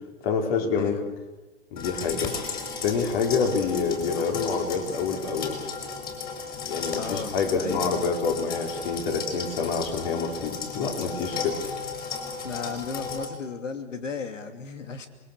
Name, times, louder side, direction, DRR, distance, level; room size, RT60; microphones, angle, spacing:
voice 1, 0.2-1.0 1.7-2.3 2.8-5.6 6.7-11.6, left 5 dB, 50° left, 3 dB, 4.5 m, -27 dB
sound 1, 1.8-13.3, left 5 dB, 25° left, 5.3 m, -34 dB
voice 2, 6.9-7.9 11.4-11.5 12.4-15.1, left 5 dB, 85° left, 7 dB, 2.8 m, -35 dB
27.5 x 21.0 x 6.8 m, 1.1 s
hypercardioid pair, 125°, 36 cm